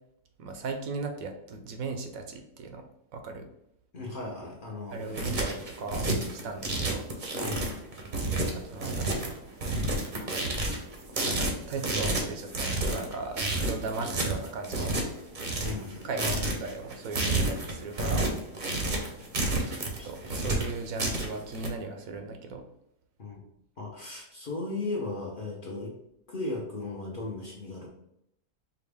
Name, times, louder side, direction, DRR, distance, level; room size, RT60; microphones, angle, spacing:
voice 1, 0.4-2.8 3.1-3.5 4.9-7.0 8.5-9.4 11.2-14.9 16.0-18.3 19.7-22.6, right 3 dB, 75° right, 5 dB, 1.0 m, -37 dB
voice 2, 3.9-5.2 7.3-7.7 15.6-16.4 20.0-20.1 23.2-23.4 23.8-25.9 26.3-27.9, left 2 dB, 45° left, -3 dB, 0.7 m, -36 dB
sound 1, 4.9-21.7, right 2 dB, 45° right, 0.7 m, -30 dB
4.9 x 2.4 x 3.4 m, 0.78 s
omnidirectional pair, 1.6 m